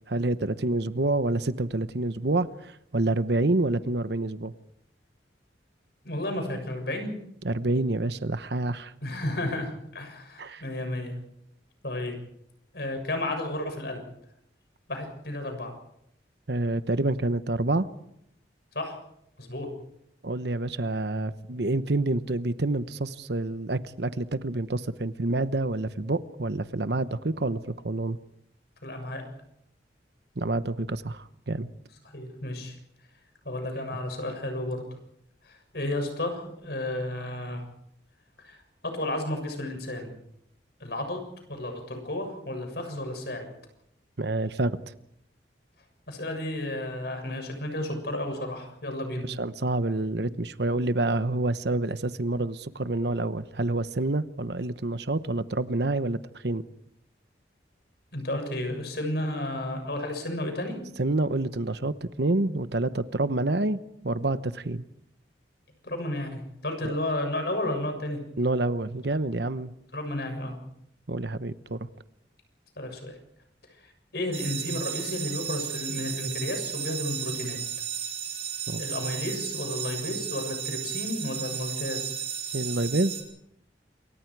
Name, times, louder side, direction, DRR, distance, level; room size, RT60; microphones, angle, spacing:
voice 1, 0.1-4.5 7.4-8.9 10.4-10.6 16.5-17.9 20.2-28.2 30.4-31.7 44.2-44.8 49.3-56.6 61.0-63.8 64.0-64.8 66.8-66.9 68.4-69.7 71.1-71.9 78.7-78.8 82.5-83.2, right 2 dB, 70° right, 13 dB, 1.0 m, -28 dB
voice 2, 6.0-7.1 9.0-11.2 11.8-12.2 12.7-14.0 14.9-15.8 18.7-19.0 19.4-19.7 28.8-29.2 32.1-32.8 33.5-34.8 35.4-37.6 38.4-40.1 40.8-41.2 41.5-43.5 46.1-49.3 58.1-60.8 65.8-68.2 69.9-70.6 72.8-73.2 73.7-77.6 78.8-82.2, left 1 dB, 65° left, 5 dB, 7.1 m, -32 dB
sound 1, 74.3-83.2, right 9 dB, 35° right, 5.9 m, -34 dB
27.5 x 24.0 x 4.8 m, 0.74 s
head